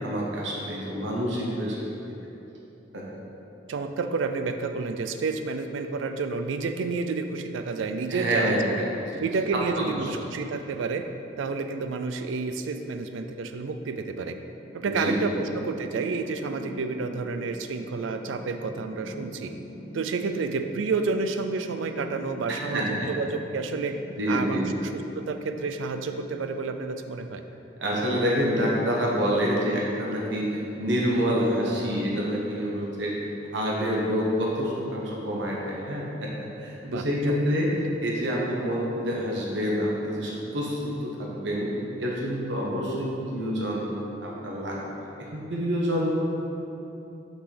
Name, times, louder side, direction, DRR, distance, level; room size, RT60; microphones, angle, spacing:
voice 1, 0.0-1.8 2.9-3.0 8.1-9.2 9.5-9.9 14.8-15.4 22.5-23.1 24.2-24.7 27.8-33.1 33.5-36.3 36.6-37.7 38.0-41.7 42.0-43.9 44.2-46.1, equal, 75° right, -3 dB, 1.0 m, -27 dB
voice 2, 3.7-8.8 9.2-11.1 11.4-14.4 14.7-19.5 19.9-24.0 24.3-27.4 36.8-37.4 37.8-37.9, right 4 dB, 90° right, 7 dB, 0.4 m, -30 dB
sound 1, 14.6-26.6, equal, 50° left, 1.1 m, -44 dB
5.8 x 5.7 x 3.3 m, 2.9 s
head